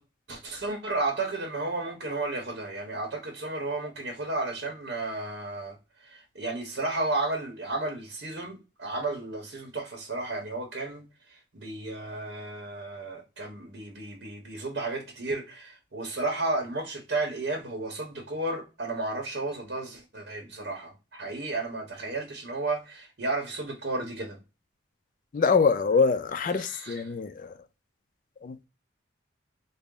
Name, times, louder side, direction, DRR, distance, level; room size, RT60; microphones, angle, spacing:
voice 1, 0.3-5.7 6.0-11.0 11.5-24.4 26.5-27.1, right 2 dB, 60° right, 0.8 m, -33 dB
voice 2, 25.3-27.5 28.4-28.7, left 5 dB, 40° left, 0.3 m, -24 dB
3.8 x 2.0 x 3.6 m
head